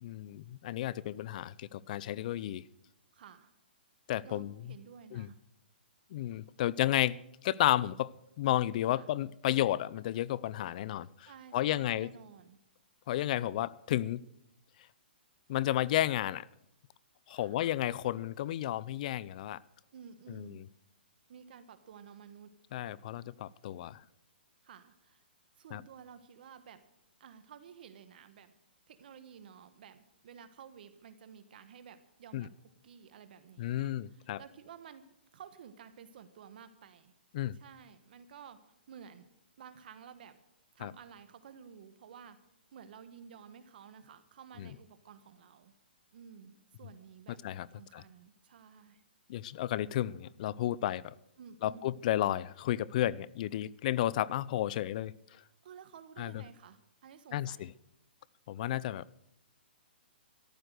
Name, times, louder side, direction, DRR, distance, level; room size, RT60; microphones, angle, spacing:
voice 1, 0.0-2.7 4.1-4.5 5.1-5.3 6.1-12.1 13.1-14.2 15.5-16.5 17.3-19.6 20.3-20.6 22.7-24.0 25.7-25.8 32.3-32.5 33.6-34.4 37.3-37.6 40.8-40.9 44.6-44.7 47.4-47.7 47.9-48.0 49.3-51.1 51.6-55.1 56.2-56.4 57.3-57.7 58.5-59.0, left 13 dB, 45° left, 0.5 m, -32 dB
voice 2, 3.1-3.5 4.2-5.4 8.9-9.1 11.2-12.6 17.3-17.7 19.9-20.6 21.3-22.5 24.6-25.2 25.6-26.8 27.2-28.5 28.9-32.5 32.8-35.0 35.3-37.1 37.5-39.3 39.6-40.4 40.7-42.4 42.7-45.7 46.1-47.4 47.7-49.0 51.4-52.0 55.6-57.7, right 7 dB, 60° right, 1.2 m, -53 dB
14.0 x 11.0 x 6.5 m
hypercardioid pair, 145°, 6 cm